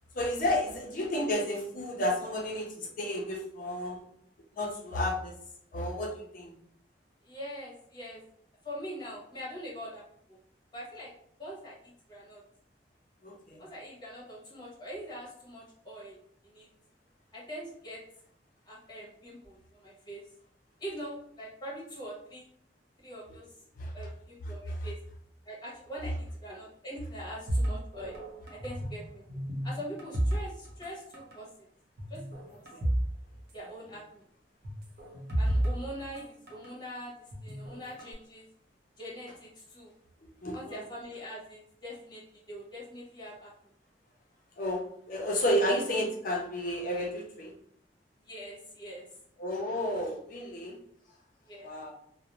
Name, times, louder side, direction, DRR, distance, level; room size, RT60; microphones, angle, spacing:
voice 1, 0.1-4.0 4.6-5.3 5.7-6.5 13.2-13.6 23.8-23.9 24.7-24.8 32.7-32.9 40.4-40.8 44.6-47.5 49.4-50.8 51.6-51.9, left 1 dB, 50° left, 0 dB, 0.5 m, -31 dB
voice 2, 7.2-8.2 8.6-10.0 10.3-10.4 10.7-11.1 11.4-11.8 12.1-12.4 13.6-16.2 16.4-16.7 17.3-18.0 18.7-20.2 20.8-22.5 23.0-23.5 23.9-25.0 25.4-28.1 28.5-29.2 29.6-31.5 32.1-32.6 33.5-34.2 35.4-38.5 39.0-39.9 40.5-43.5 48.2-49.2 51.5-51.7, equal, 25° left, -4 dB, 1.0 m, -43 dB
sound 1, 27.5-29.0 29.3-30.9 31.1-31.4 32.0-33.1 33.4-33.5 34.6-36.7 37.3-38.1, right 1 dB, 60° right, 0.7 m, -31 dB
2.5 x 2.0 x 2.9 m, 0.67 s
head